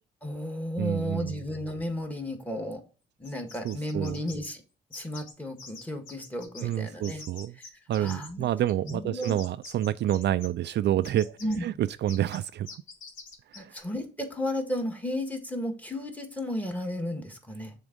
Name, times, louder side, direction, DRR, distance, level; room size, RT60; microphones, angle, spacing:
voice 1, 0.2-2.8 3.2-4.6 4.9-7.2 8.0-8.5 8.8-9.4 11.4-11.6 13.5-17.7, left 1 dB, 10° left, 1.7 m, -33 dB
voice 2, 0.8-1.4 3.6-4.2 6.6-7.6 7.9-11.3 11.6-12.7 13.5-13.8, right 12 dB, 60° right, 0.4 m, -28 dB
sound 1, 3.2-4.5 4.9-5.3 5.6-6.8 7.0-8.3 8.7-10.7 11.0-11.6 12.1-12.4 12.7-13.8, left 4 dB, 75° left, 2.1 m, -45 dB
7.0 x 3.7 x 5.1 m
cardioid pair, 90°, 20 cm